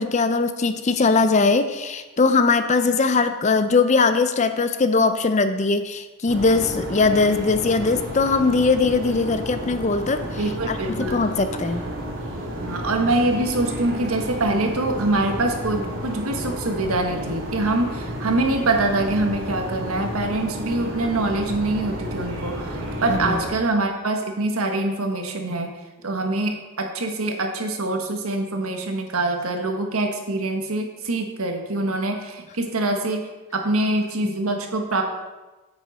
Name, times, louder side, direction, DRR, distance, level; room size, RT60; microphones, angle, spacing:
voice 1, 0.0-10.2 10.7-11.8 23.1-23.4, left 4 dB, 30° left, 10 dB, 0.5 m, -20 dB
sound 1, 6.3-23.5, equal, 60° right, 2.9 m, -31 dB
voice 2, 10.4-11.2 12.6-22.7 23.0-25.7 26.0-33.3 33.5-35.0, right 2 dB, 80° right, 4 dB, 1.4 m, -24 dB
9.2 x 8.1 x 4.1 m, 1.2 s
head